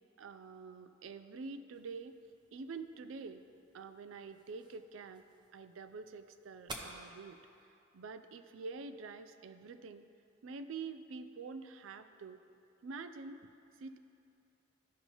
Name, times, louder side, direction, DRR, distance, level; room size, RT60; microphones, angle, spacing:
voice 1, 0.2-2.2 2.5-3.4 3.7-5.2 5.5-7.4 7.9-10.0 10.4-12.4 12.8-13.4 13.8-14.0, right 4 dB, 70° right, 10 dB, 0.4 m, -46 dB
sound 1, 1.7-7.7, right 2 dB, 25° right, 0.7 m, -53 dB
14.0 x 5.4 x 3.0 m, 2.8 s
head